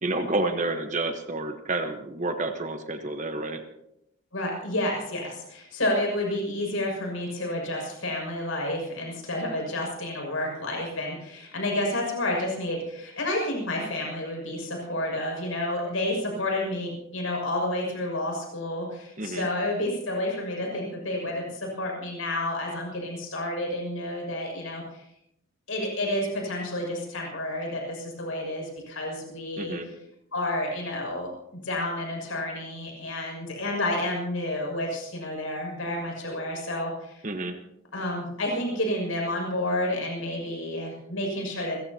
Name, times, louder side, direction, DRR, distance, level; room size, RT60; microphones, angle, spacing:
voice 1, 0.0-3.6 19.2-19.5 29.6-29.9 37.2-37.5, right 2 dB, 35° right, 6 dB, 1.1 m, -29 dB
voice 2, 4.3-25.0 25.7-29.9 30.3-37.2 37.9-41.9, left 1 dB, 70° left, 0 dB, 6.4 m, -30 dB
29.0 x 15.0 x 2.9 m, 0.80 s
head